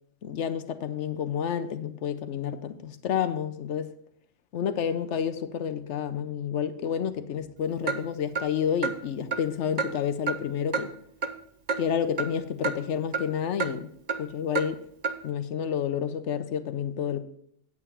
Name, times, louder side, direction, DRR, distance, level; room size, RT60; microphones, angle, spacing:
voice 1, 0.2-3.9 4.5-10.9 11.8-13.9 14.2-14.8 15.2-17.2, left 8 dB, 70° left, 1.0 m, -29 dB
Clock, 7.9-8.0 8.3-8.5 8.8-9.0 9.3-9.4 9.8-9.9 10.3-10.4 10.7-10.9 11.2-11.3 11.7-11.8 12.2-12.3 12.6-12.7 13.1-13.3 13.6-13.7 14.1-14.2 14.5-14.7 15.0-15.2, right 5 dB, 45° right, 0.6 m, -28 dB
9.1 x 8.4 x 4.3 m
omnidirectional pair, 1.3 m